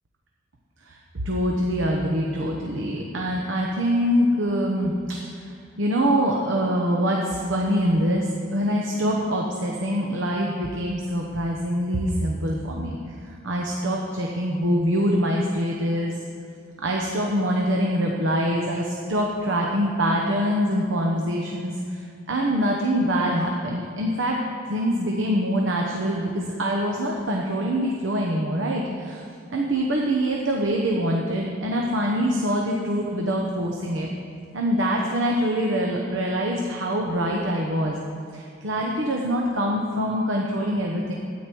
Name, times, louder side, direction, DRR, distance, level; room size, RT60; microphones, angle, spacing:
voice 1, 1.2-13.1 13.4-16.1 16.8-22.0 22.3-24.4 24.6-29.2 29.5-34.1 34.5-38.0 38.3-41.1, equal, 80° right, -1 dB, 1.0 m, -24 dB
12.5 x 9.4 x 4.6 m, 2.3 s
head